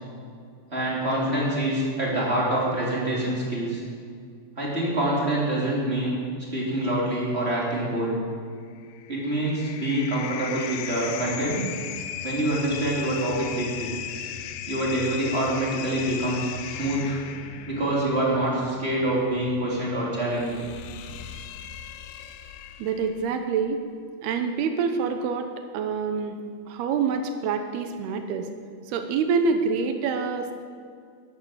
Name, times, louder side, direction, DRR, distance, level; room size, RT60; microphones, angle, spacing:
voice 1, 0.7-3.8 4.6-6.2 6.5-8.2 9.1-11.6 12.2-13.9 14.7-17.2 17.7-20.7, right 1 dB, 15° right, -5 dB, 2.8 m, -26 dB
sound 1, 8.7-23.3, left 10 dB, 80° left, 2.8 m, -37 dB
voice 2, 22.8-23.8 24.2-25.5 25.7-26.4 26.7-28.5 28.9-30.5, right 5 dB, 75° right, 7 dB, 2.6 m, -26 dB
13.0 x 11.0 x 7.3 m, 2.2 s
omnidirectional pair, 5.2 m